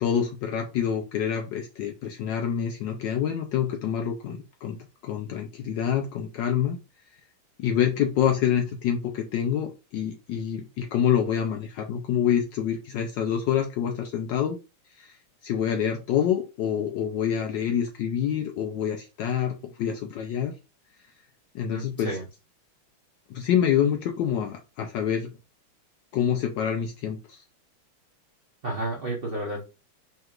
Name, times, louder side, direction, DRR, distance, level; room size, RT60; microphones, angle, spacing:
voice 1, 0.0-6.8 7.6-14.6 14.9-15.2 15.4-20.6 21.5-22.2 23.3-25.3 26.1-27.4, left 9 dB, 75° left, 4 dB, 1.0 m, -27 dB
voice 2, 21.7-22.3 28.6-29.6, right 2 dB, 60° right, -2 dB, 0.5 m, -31 dB
4.6 x 3.1 x 2.4 m, 0.29 s
omnidirectional pair, 2.4 m